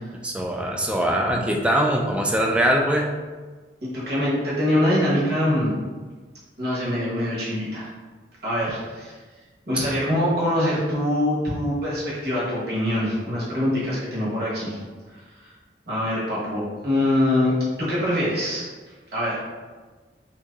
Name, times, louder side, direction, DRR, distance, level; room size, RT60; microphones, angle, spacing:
voice 1, 0.2-3.1, right 1 dB, 5° right, 1 dB, 0.3 m, -22 dB
voice 2, 3.8-5.7 6.6-7.9 8.4-9.1 9.7-14.8 15.4-15.5 15.9-18.6 19.1-19.4, left 1 dB, 60° right, -7 dB, 1.2 m, -24 dB
2.9 x 2.6 x 3.5 m, 1.4 s
head